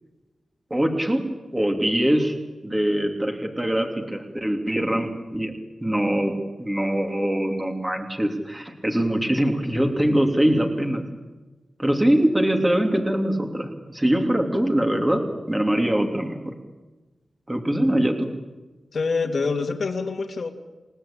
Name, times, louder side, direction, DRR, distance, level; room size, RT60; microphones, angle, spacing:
voice 1, 0.7-1.2 1.5-2.3 2.6-5.5 5.8-11.0 11.8-15.2 15.5-16.5 17.5-18.3, right 1 dB, 10° right, 3 dB, 2.9 m, -23 dB
voice 2, 18.9-20.5, left 4 dB, 50° left, 4 dB, 2.7 m, -25 dB
29.5 x 17.0 x 8.7 m, 1.2 s
wide cardioid pair, 160°, 0 cm